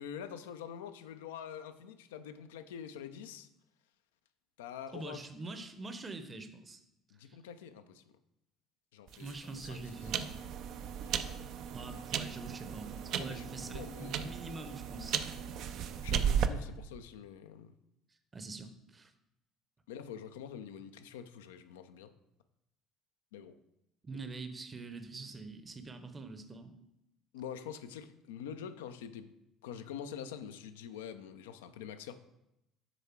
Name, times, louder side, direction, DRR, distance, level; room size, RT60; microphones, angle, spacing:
voice 1, 0.0-3.5 4.6-5.2 5.5-5.6 7.1-8.2 8.9-9.8 11.2-11.4 13.2-14.4 16.0-17.7 19.9-22.1 23.3-23.6 27.3-29.3 29.6-32.1, left 8 dB, 75° left, 10 dB, 0.4 m, -45 dB
voice 2, 4.9-6.8 7.3-7.4 9.2-10.3 11.7-15.2 18.3-19.1 24.0-26.7, right 3 dB, 25° right, 8 dB, 0.7 m, -44 dB
sound 1, 9.1-16.5, right 8 dB, 55° right, 0.4 m, -36 dB
6.9 x 3.5 x 4.4 m, 0.87 s
figure-of-eight pair, 55°, 0 cm